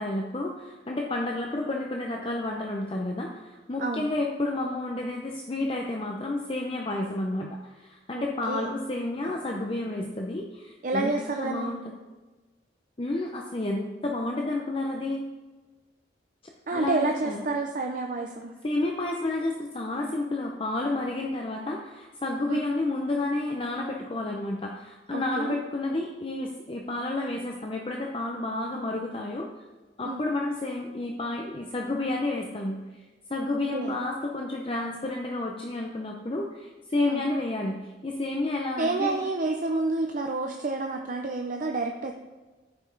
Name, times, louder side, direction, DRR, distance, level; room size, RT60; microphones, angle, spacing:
voice 1, 0.0-11.1 11.4-11.8 13.0-15.3 16.7-17.4 18.6-29.5 30.0-32.8 33.3-37.8 38.0-39.2, left 2 dB, 30° left, 0 dB, 0.7 m, -30 dB
voice 2, 3.8-4.1 8.2-8.7 10.8-11.8 16.7-18.5 22.5-22.7 25.1-25.6 30.0-30.2 33.7-33.9 37.1-37.2 38.8-42.1, right 3 dB, 45° right, 3 dB, 0.6 m, -29 dB
14.0 x 5.3 x 3.9 m, 1.3 s
head